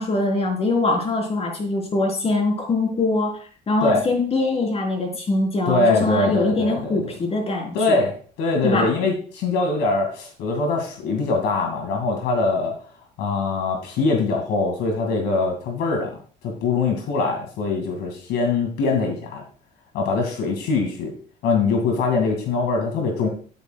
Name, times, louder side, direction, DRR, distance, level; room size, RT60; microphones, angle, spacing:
voice 1, 0.0-3.4 3.7-8.1 8.6-8.9, left 2 dB, 35° left, 1 dB, 3.7 m, -23 dB
voice 2, 5.7-7.1 7.7-12.7 13.2-16.1 16.4-19.4 19.9-21.1 21.4-23.3, left 3 dB, 85° left, 2 dB, 2.1 m, -23 dB
11.5 x 9.3 x 2.3 m, 0.41 s
cardioid pair, 110°, 17 cm